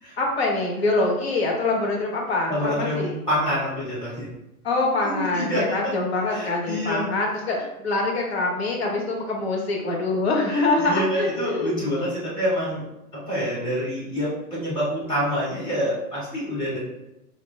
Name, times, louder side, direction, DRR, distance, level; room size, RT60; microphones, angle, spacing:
voice 1, 0.2-3.1 4.6-11.7 12.1-12.2, left 2 dB, 45° left, 0 dB, 0.7 m, -24 dB
voice 2, 2.5-4.3 5.1-5.7 6.3-7.1 10.5-12.8 13.1-16.8, equal, 10° left, -10 dB, 0.9 m, -27 dB
3.0 x 2.1 x 2.2 m, 0.89 s
figure-of-eight pair, 110°, 45 cm